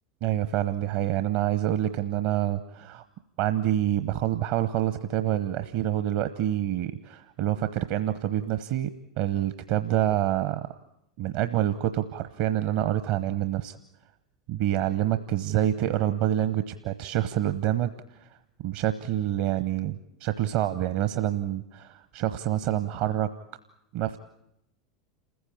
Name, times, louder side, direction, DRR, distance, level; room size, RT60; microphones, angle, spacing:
voice 1, 0.2-3.0 3.4-8.9 9.2-10.8 11.2-13.8 14.5-17.9 18.2-18.3 18.6-19.9 20.2-23.3 23.9-24.2, right 12 dB, 55° right, 11 dB, 0.9 m, -27 dB
28.0 x 15.5 x 8.6 m, 0.83 s
figure-of-eight pair, 85°, 3 cm